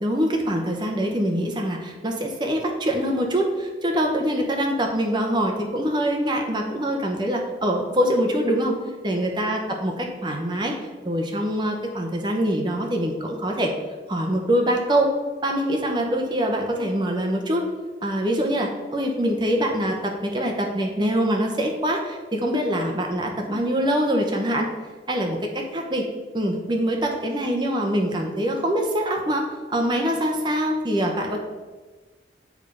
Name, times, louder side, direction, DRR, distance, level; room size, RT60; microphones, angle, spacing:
voice 1, 0.0-8.7 9.0-10.7 11.0-13.7 14.1-15.1 15.4-17.7 18.0-24.7 25.1-26.1 26.3-31.4, equal, 25° right, 2 dB, 0.8 m, -24 dB
7.3 x 3.5 x 5.4 m, 1.3 s
head